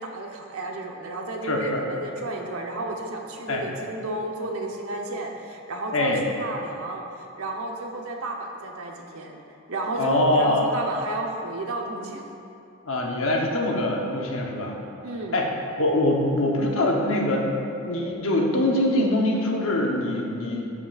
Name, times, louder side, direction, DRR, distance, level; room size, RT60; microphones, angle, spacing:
voice 1, 0.0-12.2 15.0-15.4, right 2 dB, 85° right, 1 dB, 0.9 m, -32 dB
voice 2, 1.4-1.8 3.5-3.6 5.9-6.2 10.0-10.7 12.9-14.8 15.3-17.5 17.8-20.7, left 1 dB, 65° left, 0 dB, 1.0 m, -23 dB
13.0 x 5.9 x 2.5 m, 2.8 s
head